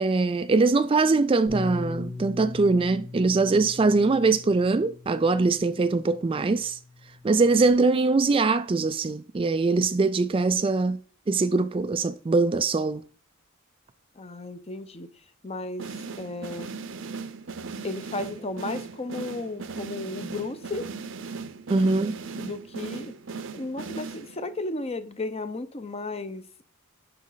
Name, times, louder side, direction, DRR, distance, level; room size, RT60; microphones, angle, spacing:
voice 1, 0.0-6.8 7.2-11.0 11.3-13.0 21.7-22.2, right 3 dB, 25° right, 0.3 m, -22 dB
Bass guitar, 1.5-7.7, left 3 dB, 75° left, 4.1 m, -40 dB
voice 2, 14.2-15.1 15.4-15.9 16.2-16.7 17.8-20.9 22.3-23.1 23.5-26.6, left 2 dB, 30° left, 0.7 m, -34 dB
sound 1, 15.8-24.6, right 4 dB, 60° right, 0.7 m, -38 dB
11.5 x 4.1 x 4.0 m
head